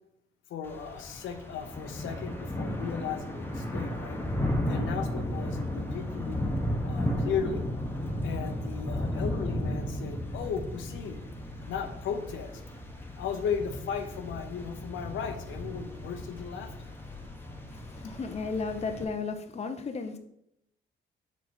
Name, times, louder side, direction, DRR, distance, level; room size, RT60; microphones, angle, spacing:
voice 1, 0.5-4.2 4.6-6.4 6.8-7.6 8.2-11.2 11.7-12.5 13.2-16.7, left 7 dB, 75° left, 6 dB, 1.0 m, -36 dB
Thunder / Rain, 0.6-19.0, left 1 dB, 10° left, 1.3 m, -34 dB
voice 2, 17.7-20.2, left 4 dB, 30° left, 6 dB, 0.8 m, -34 dB
6.7 x 4.8 x 4.3 m, 0.76 s
cardioid pair, 90°, 20 cm